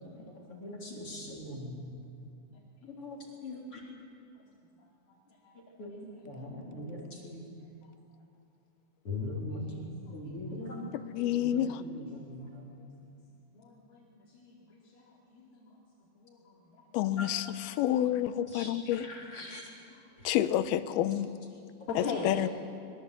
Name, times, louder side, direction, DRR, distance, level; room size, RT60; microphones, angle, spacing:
voice 1, 0.0-1.9 2.9-3.8 5.8-7.5 9.1-9.8 10.1-10.9 11.2-12.8 17.2-17.3 18.5-19.7, left 2 dB, 40° left, -2 dB, 4.1 m, -41 dB
voice 2, 2.5-3.0 3.5-3.6 5.4-5.6 9.7-9.8 10.3-10.4 12.2-12.3 12.8-12.9 13.6-14.1 14.3-15.7 16.2-16.5 19.9-20.0 21.5-21.6 21.9-22.5, left 4 dB, 70° left, -4 dB, 4.4 m, -41 dB
voice 3, 11.1-11.8 16.9-19.1 20.2-21.3 22.0-22.5, left 12 dB, 85° left, 12 dB, 2.8 m, -29 dB
24.5 x 22.0 x 8.2 m, 2.4 s
omnidirectional pair, 4.3 m